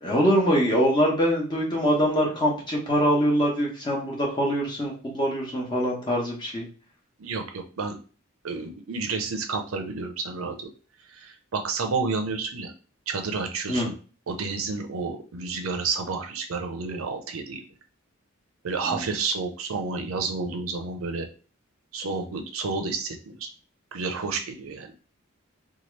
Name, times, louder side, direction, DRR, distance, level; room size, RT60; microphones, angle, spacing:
voice 1, 0.0-6.7 13.7-13.9 18.8-19.1, equal, 20° left, -3 dB, 0.9 m, -23 dB
voice 2, 7.2-8.0 8.4-10.7 11.1-12.7 13.1-13.9 14.3-17.6 18.6-21.3 21.9-23.5 23.9-24.9, right 4 dB, 85° right, 5 dB, 0.6 m, -30 dB
2.8 x 2.4 x 3.1 m, 0.38 s
head